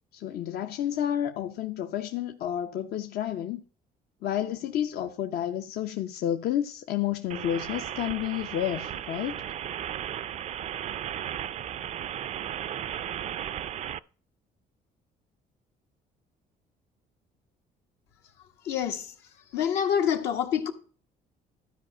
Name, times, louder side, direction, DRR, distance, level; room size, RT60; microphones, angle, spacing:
voice 1, 0.1-3.6 4.2-9.4, left 11 dB, 70° left, 0.7 m, -30 dB
sound 1, 7.3-14.0, right 10 dB, 45° right, 0.4 m, -35 dB
voice 2, 18.6-19.1 19.5-20.7, left 8 dB, 85° left, 1.4 m, -26 dB
12.5 x 4.9 x 5.5 m
cardioid pair, 110°, 17 cm